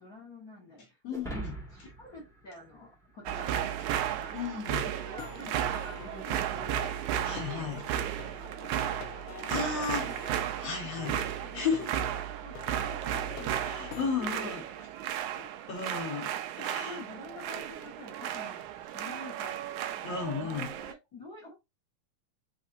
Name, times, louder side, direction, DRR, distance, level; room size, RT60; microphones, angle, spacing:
voice 1, 0.0-1.3 1.7-4.3 4.8-9.3 9.5-9.8 10.1-10.2 10.8-14.5 14.8-15.0 15.3-15.7 16.6-19.5 19.9-21.5, left 2 dB, 40° left, 1.5 m, -48 dB
voice 2, 1.0-1.6 4.3-4.9 7.2-7.9 9.5-10.1 10.6-11.2 11.5-11.9 13.7-14.6 15.7-17.0 20.0-20.7, left 5 dB, 60° left, 2.4 m, -34 dB
sound 1, 1.1-3.6, right 2 dB, ahead, 0.7 m, -43 dB
sound 2, 3.3-20.9, right 10 dB, 80° right, 1.9 m, -34 dB
Plucked string instrument, 4.4-14.2, left 11 dB, 85° left, 2.3 m, -47 dB
5.6 x 3.4 x 2.6 m
omnidirectional pair, 3.6 m